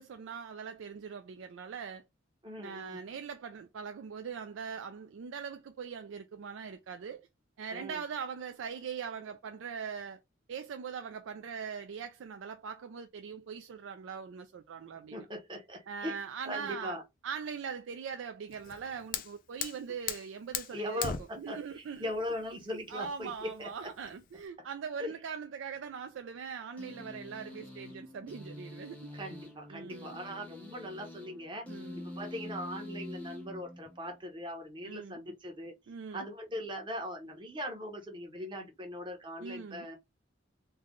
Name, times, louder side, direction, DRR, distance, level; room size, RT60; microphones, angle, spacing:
voice 1, 0.0-2.0 2.6-7.3 7.6-10.2 10.5-15.3 15.9-17.0 17.2-21.1 21.4-22.1 22.9-29.1 29.7-30.2 31.7-32.0 34.8-35.2 35.9-36.3 39.4-39.9, right 6 dB, 85° right, 0.4 m, -41 dB
voice 2, 2.4-3.0 7.7-8.0 15.1-16.2 16.5-17.0 20.7-23.9 25.0-25.1 29.1-31.6 32.0-35.7 36.1-40.0, equal, 25° right, 0.9 m, -40 dB
Fire, 18.5-24.5, left 8 dB, 45° left, 0.4 m, -41 dB
sound 1, 26.8-34.2, left 1 dB, 10° left, 0.7 m, -46 dB
3.3 x 2.1 x 3.7 m
head